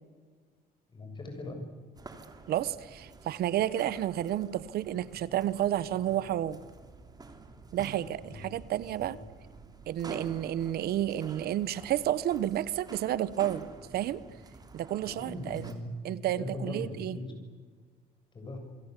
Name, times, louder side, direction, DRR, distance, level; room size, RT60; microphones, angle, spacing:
voice 1, 0.9-1.7 8.2-8.4 9.0-9.1 15.0-16.0 16.3-17.3 18.3-18.6, left 1 dB, 30° left, 4 dB, 7.8 m, -40 dB
sound 1, 1.9-15.7, right 3 dB, 25° right, 3.4 m, -49 dB
voice 2, 2.5-6.6 7.7-9.2 9.9-13.7 13.9-14.2 14.7-15.7 16.0-17.2, right 12 dB, 65° right, 17 dB, 1.1 m, -31 dB
27.5 x 24.0 x 8.3 m, 1.5 s
cardioid pair, 110°, 17 cm